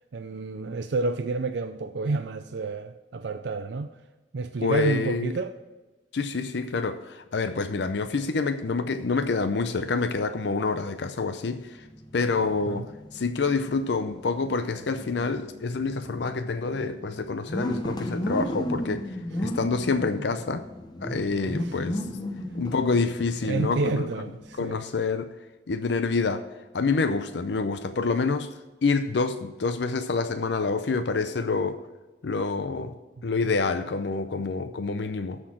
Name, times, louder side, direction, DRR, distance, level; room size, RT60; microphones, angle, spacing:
voice 1, 0.1-3.9 4.3-5.5 12.4-12.9 19.4-19.6 21.6-21.7 23.5-24.8, right 3 dB, 70° right, 0.5 m, -30 dB
voice 2, 4.6-5.3 6.1-11.8 12.1-19.0 19.4-20.6 21.0-22.1 22.5-24.1 24.6-25.3 25.7-26.5 26.7-28.5 28.8-31.8 32.2-32.9 33.2-35.4, left 4 dB, 65° left, 0.5 m, -27 dB
sound 1, 11.6-24.9, left 1 dB, 25° left, 0.7 m, -36 dB
13.0 x 4.4 x 6.0 m
head